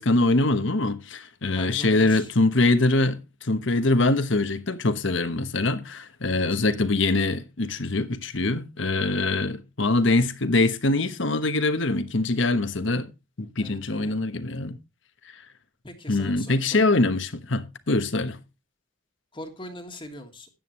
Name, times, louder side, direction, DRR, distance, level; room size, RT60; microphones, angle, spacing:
voice 1, 0.0-13.1 13.4-14.8 16.1-18.4, left 2 dB, 65° left, 1.2 m, -23 dB
voice 2, 1.5-2.3 6.3-6.6 13.6-14.2 15.8-16.9 19.3-20.5, left 1 dB, 25° left, 1.7 m, -41 dB
13.0 x 9.3 x 3.1 m
head